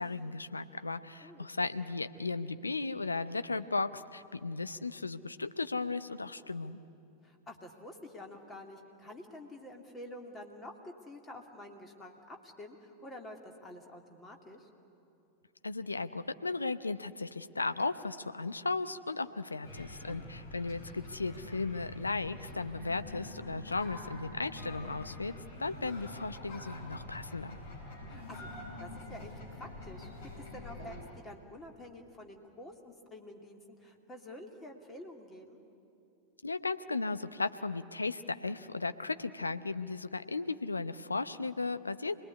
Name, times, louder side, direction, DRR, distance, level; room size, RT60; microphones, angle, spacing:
voice 1, 0.0-6.8 15.6-27.6 36.4-42.2, left 3 dB, 80° left, 11 dB, 0.7 m, -36 dB
voice 2, 7.2-14.7 20.1-20.3 28.1-30.1 30.4-35.6, left 1 dB, 15° left, 3 dB, 2.6 m, -49 dB
sound 1, 19.6-31.0, left 2 dB, 55° left, 5.8 m, -46 dB
26.5 x 19.5 x 9.9 m, 2.8 s
figure-of-eight pair, 90°, 0 cm